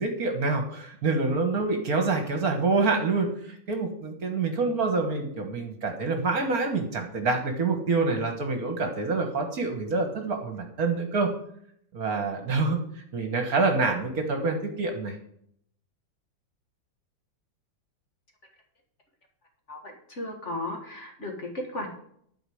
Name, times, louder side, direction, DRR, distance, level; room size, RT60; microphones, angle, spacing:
voice 1, 0.0-11.3 11.9-12.8 13.1-15.2, right 3 dB, 50° right, 5 dB, 1.8 m, -26 dB
voice 2, 19.7-21.9, left 1 dB, 40° left, 2 dB, 1.9 m, -35 dB
12.0 x 4.9 x 7.8 m, 0.68 s
omnidirectional pair, 2.0 m